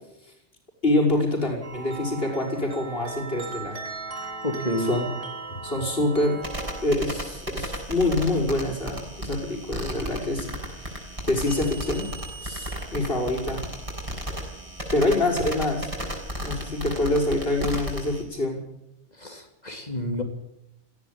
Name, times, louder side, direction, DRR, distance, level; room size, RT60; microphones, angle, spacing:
voice 1, 0.8-3.8 4.8-5.1 5.6-6.4 6.8-10.9 11.3-12.1 12.4-13.6 14.9-15.9 16.4-18.6, left 1 dB, 55° left, 1 dB, 6.4 m, -25 dB
sound 1, 1.6-6.8, right 3 dB, 90° right, 4.3 m, -37 dB
voice 2, 4.4-4.9 19.2-20.2, left 1 dB, 35° left, 5 dB, 3.4 m, -29 dB
sound 2, 6.4-18.2, equal, 30° right, 6.2 m, -34 dB
19.0 x 16.0 x 8.8 m, 0.85 s
omnidirectional pair, 1.2 m